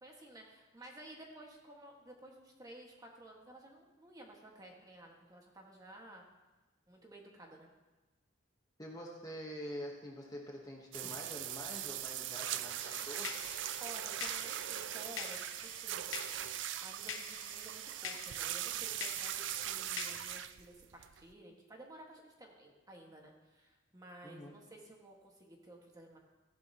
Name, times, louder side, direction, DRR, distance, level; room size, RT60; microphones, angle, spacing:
voice 1, 0.0-6.2 6.9-7.7 13.8-16.1 16.8-26.2, right 1 dB, 20° right, 0 dB, 1.6 m, -54 dB
voice 2, 8.8-13.3 24.2-24.5, equal, 20° left, -1 dB, 1.1 m, -46 dB
sound 1, 10.9-21.3, right 12 dB, 65° right, 0.4 m, -40 dB
sound 2, 12.8-20.4, left 7 dB, 85° left, 0.8 m, -47 dB
15.0 x 10.5 x 2.9 m, 1.2 s
head